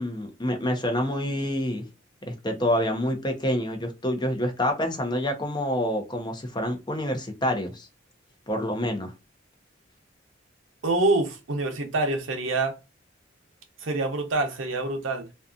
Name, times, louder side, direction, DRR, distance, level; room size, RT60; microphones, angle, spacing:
voice 1, 0.0-1.8 2.3-7.9 8.5-9.1, left 1 dB, 20° left, 0.6 m, -27 dB
voice 2, 10.8-12.8 13.8-15.3, right 2 dB, 75° right, 0.7 m, -26 dB
2.7 x 2.3 x 2.4 m
head